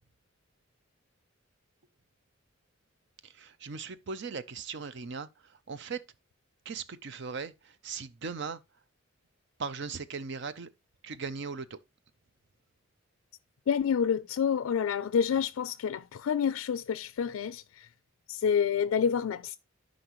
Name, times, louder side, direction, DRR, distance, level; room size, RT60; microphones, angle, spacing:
voice 1, 3.4-5.3 5.7-6.0 6.7-7.5 7.8-8.6 9.6-10.7 11.0-11.8, right 5 dB, 60° right, 0.6 m, -38 dB
voice 2, 13.7-17.9 18.3-19.6, left 7 dB, 90° left, 0.3 m, -28 dB
11.5 x 5.2 x 3.0 m
head